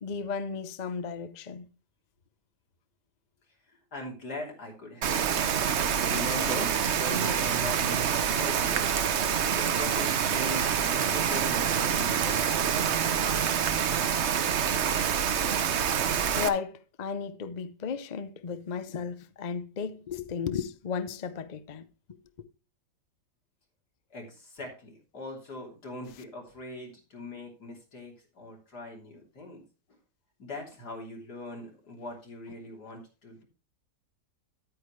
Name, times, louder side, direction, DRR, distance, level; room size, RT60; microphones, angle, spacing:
voice 1, 0.0-1.7 16.4-21.9, left 6 dB, 45° left, 0.5 m, -34 dB
voice 2, 3.6-5.2 6.1-8.8 9.5-12.5 24.1-29.6 29.9-30.0 30.4-33.4, left 2 dB, 75° left, 3.7 m, -41 dB
Rain, 5.0-16.5, right 8 dB, 55° right, 0.9 m, -26 dB
10.0 x 9.2 x 3.2 m
omnidirectional pair, 1.7 m